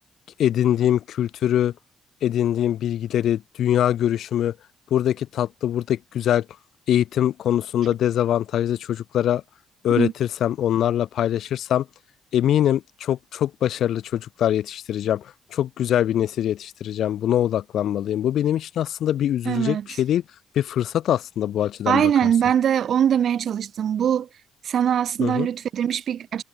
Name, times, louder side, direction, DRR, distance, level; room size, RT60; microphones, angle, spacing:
voice 1, 0.4-1.7 2.2-4.5 4.9-6.4 6.9-9.4 9.8-11.9 12.3-15.2 15.5-20.2 20.6-22.0 25.2-25.5, left 11 dB, 70° left, 0.8 m, -23 dB
voice 2, 19.5-19.9 21.9-24.3 24.6-26.4, right 9 dB, 60° right, 0.4 m, -22 dB
cardioid pair, 90°, 0 cm